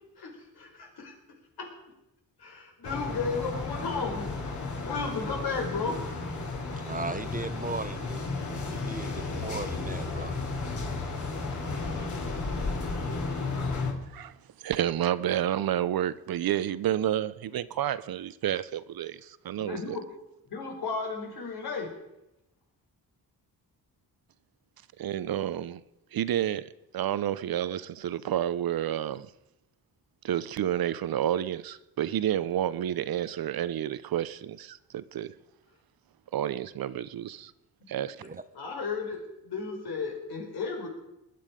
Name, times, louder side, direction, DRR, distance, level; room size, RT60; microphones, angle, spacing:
voice 1, 0.2-1.1 1.6-1.7 2.4-4.3 4.8-6.0 19.6-20.0 20.5-21.9 37.9-38.0 38.5-40.9, left 4 dB, 75° left, 4.7 m, -34 dB
sound 1, 2.8-13.9, left 3 dB, 50° left, 3.4 m, -33 dB
voice 2, 6.8-8.3 8.6-10.4 38.2-38.3, right 3 dB, 20° right, 0.9 m, -37 dB
voice 3, 14.1-20.0 25.0-25.8 26.1-29.3 30.2-35.3 36.3-37.5 37.9-38.4, right 11 dB, 70° right, 0.7 m, -30 dB
20.5 x 10.5 x 5.2 m
cardioid pair, 85°, 38 cm